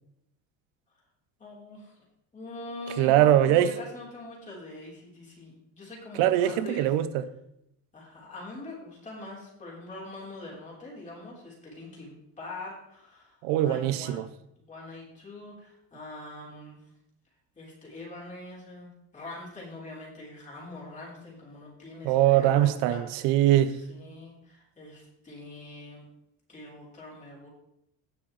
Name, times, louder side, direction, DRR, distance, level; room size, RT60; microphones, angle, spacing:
voice 1, 1.4-2.0 2.3-6.9 7.9-16.9 17.6-23.0 23.7-26.1 26.5-27.5, left 2 dB, 20° left, 3.8 m, -43 dB
voice 2, 3.0-3.7 6.2-7.2 13.4-14.3 22.0-23.8, right 12 dB, 90° right, 0.8 m, -22 dB
17.0 x 6.2 x 3.2 m
cardioid pair, 170°, 41 cm